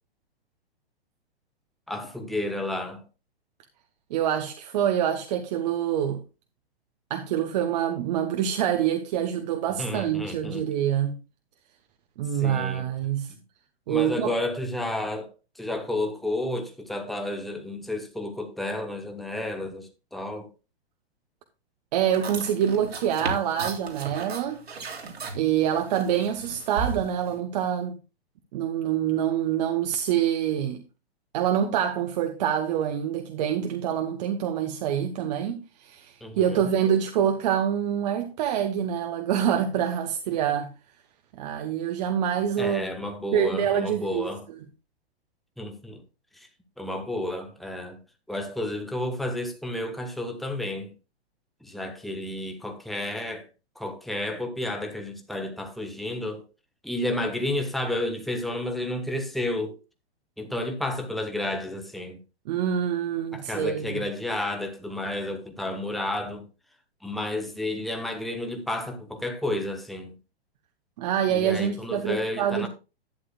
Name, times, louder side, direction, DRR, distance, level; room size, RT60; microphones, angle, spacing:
voice 1, 1.9-3.0 9.7-10.7 12.4-12.9 13.3-13.4 13.9-15.3 15.5-20.5 36.2-36.7 42.6-44.5 45.6-46.0 46.3-46.5 46.8-48.0 48.3-50.9 51.6-53.5 53.7-56.4 56.8-59.8 60.4-62.2 63.3-66.4 67.0-70.2 71.3-72.7, left 1 dB, ahead, 1.2 m, -31 dB
voice 2, 4.1-6.2 7.1-11.2 12.2-13.3 13.9-14.3 21.9-24.6 25.3-27.9 28.5-30.8 31.3-40.7 41.3-42.8 43.3-44.3 62.5-64.0 71.0-72.7, right 9 dB, 40° right, 1.0 m, -26 dB
sound 1, 22.1-27.4, right 4 dB, 70° right, 2.7 m, -36 dB
11.5 x 9.4 x 2.4 m
figure-of-eight pair, 110°, 32 cm